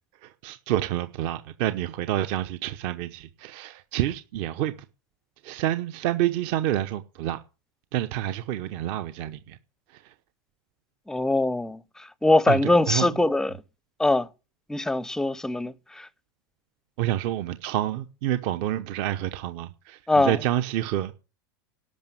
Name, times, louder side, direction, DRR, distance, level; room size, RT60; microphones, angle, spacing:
voice 1, 0.2-4.7 5.4-7.4 7.9-9.6 9.9-10.0 12.5-13.1 17.0-21.1, right 13 dB, 50° right, 0.9 m, -28 dB
voice 2, 11.1-11.8 12.2-13.6 14.0-14.3 14.7-16.1 20.1-20.4, left 2 dB, 5° left, 0.5 m, -22 dB
12.0 x 6.1 x 9.0 m
supercardioid pair, 140°, 12 cm